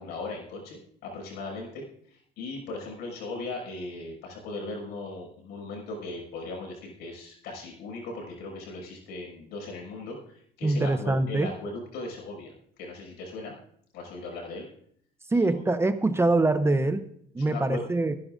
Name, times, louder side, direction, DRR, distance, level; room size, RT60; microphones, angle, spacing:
voice 1, 0.0-1.8 2.1-12.5 12.8-13.5 13.9-14.7 15.5-15.7 16.7-16.8 17.4-17.8, left 2 dB, 90° left, 1 dB, 5.9 m, -38 dB
voice 2, 10.6-11.5 15.3-17.1 17.3-18.1, right 2 dB, 15° right, 11 dB, 0.7 m, -24 dB
24.5 x 11.0 x 2.6 m, 0.65 s
cardioid pair, 110°, 17 cm